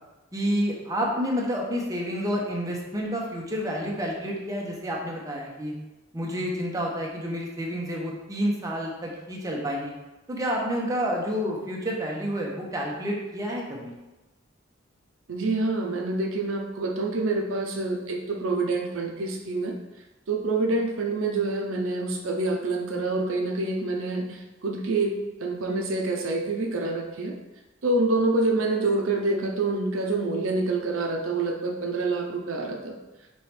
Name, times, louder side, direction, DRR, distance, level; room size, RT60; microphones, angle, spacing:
voice 1, 0.3-5.7 6.1-9.9 10.3-13.9, equal, 15° right, -2 dB, 0.7 m, -29 dB
voice 2, 15.3-19.8 20.3-25.1 25.4-27.4 27.8-32.9, right 2 dB, 75° right, 2 dB, 0.6 m, -27 dB
4.5 x 3.0 x 3.2 m, 1.1 s
head